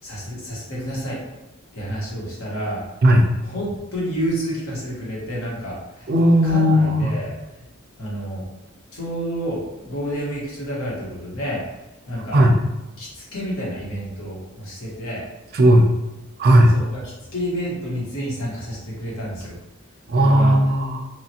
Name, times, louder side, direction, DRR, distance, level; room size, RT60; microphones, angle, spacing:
voice 1, 0.0-1.2 1.7-2.8 3.4-6.1 6.4-7.3 8.0-8.4 8.9-11.6 12.1-12.4 13.0-15.2 16.7-17.0 17.3-19.5 20.1-20.6, equal, 75° left, -6 dB, 1.2 m, -29 dB
voice 2, 6.1-7.1 12.3-12.5 15.5-15.9 16.4-16.7 20.1-21.1, equal, 45° right, 2 dB, 0.4 m, -15 dB
3.1 x 2.4 x 2.8 m, 0.98 s
head